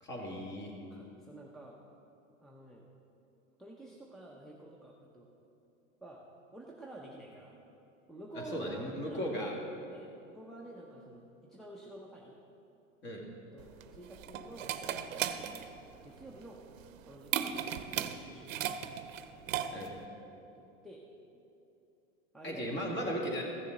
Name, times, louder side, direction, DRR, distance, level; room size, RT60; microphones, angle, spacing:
voice 1, 0.0-0.7 8.3-9.5 13.0-13.3 19.7-19.9 22.4-23.4, equal, 30° left, 0 dB, 2.0 m, -36 dB
voice 2, 0.9-1.8 2.4-2.8 3.6-5.3 6.0-6.2 6.5-7.6 8.1-9.5 9.8-12.4 13.1-13.2 13.5-14.8 15.1-16.6 17.0-19.0 20.5-21.0 22.3-23.0, right 1 dB, ahead, -2 dB, 0.6 m, -50 dB
sound 1, 13.6-20.1, right 10 dB, 85° right, 0.6 m, -37 dB
14.5 x 6.8 x 3.9 m, 2.8 s
supercardioid pair, 125°, 38 cm